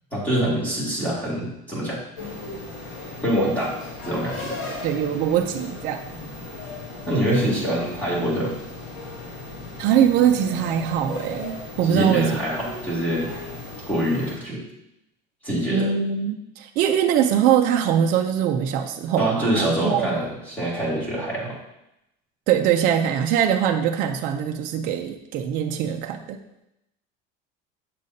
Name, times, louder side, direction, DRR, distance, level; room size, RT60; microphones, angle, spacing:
voice 1, 0.1-2.0 3.2-3.7 4.0-4.5 7.1-8.5 11.9-13.3 13.9-14.6 15.4-15.9 19.2-21.6, right 1 dB, 10° left, -7 dB, 2.3 m, -25 dB
sound 1, 2.2-14.4, left 2 dB, 65° left, 2.0 m, -37 dB
voice 2, 4.6-6.0 9.8-12.4 15.7-20.2 22.5-26.4, right 9 dB, 45° right, 4 dB, 0.5 m, -22 dB
7.4 x 6.6 x 2.7 m, 0.85 s
cardioid pair, 170°, 21 cm